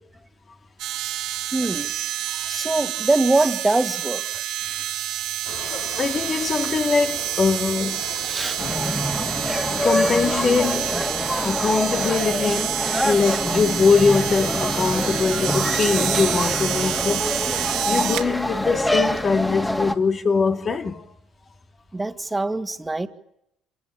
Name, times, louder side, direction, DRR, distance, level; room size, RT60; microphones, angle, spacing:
sound 1, 0.8-18.3 19.2-19.3, right 13 dB, 75° right, 2.9 m, -28 dB
voice 1, 1.5-1.9 2.5-4.4 8.2-8.6 21.9-23.1, right 2 dB, 15° right, 2.2 m, -23 dB
sound 2, 5.4-10.6, left 5 dB, 85° left, 5.5 m, -38 dB
voice 2, 6.0-8.0 9.7-11.1 11.4-12.8 13.0-17.5 17.9-21.1, left 5 dB, 40° left, 2.1 m, -22 dB
sound 3, 8.6-20.0, left 1 dB, 10° left, 2.7 m, -25 dB
26.5 x 20.0 x 9.0 m
supercardioid pair, 80°, 0 cm